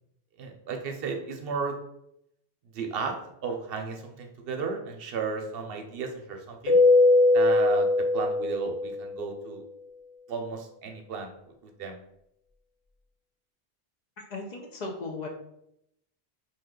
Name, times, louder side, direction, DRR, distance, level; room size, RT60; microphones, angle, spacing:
voice 1, 0.4-1.8 2.7-6.8 7.3-9.6 10.3-11.3 11.6-12.0, right 5 dB, 70° right, 3 dB, 0.7 m, -34 dB
Keyboard (musical), 6.7-9.2, left 2 dB, 85° left, 0.9 m, -21 dB
voice 2, 14.3-15.3, left 3 dB, 50° left, 0 dB, 0.6 m, -36 dB
2.7 x 2.3 x 3.6 m, 0.77 s
omnidirectional pair, 1.1 m